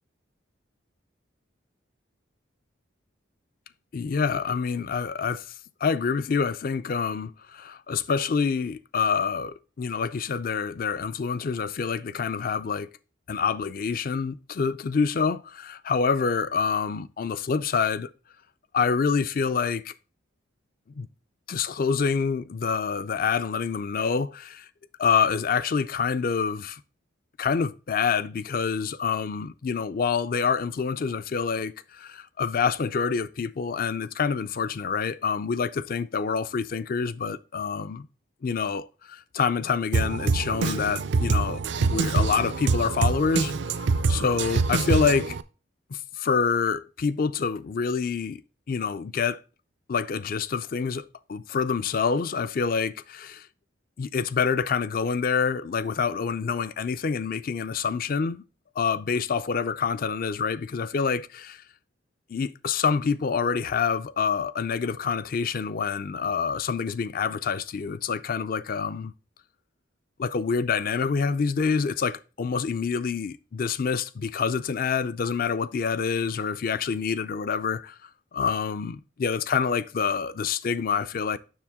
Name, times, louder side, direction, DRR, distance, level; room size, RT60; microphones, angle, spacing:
voice 1, 3.9-5.4 5.8-12.9 13.3-18.1 18.7-19.9 21.0-21.1 21.5-24.7 25.0-26.8 27.4-38.1 38.4-43.5 43.8-45.4 45.9-48.4 48.7-49.4 49.9-53.5 54.0-58.4 58.8-61.6 62.3-69.1 70.2-81.4, left 5 dB, 45° left, 0.4 m, -27 dB
Drum kit, 39.9-45.4, right 4 dB, 60° right, 0.4 m, -25 dB
7.3 x 6.2 x 3.5 m
head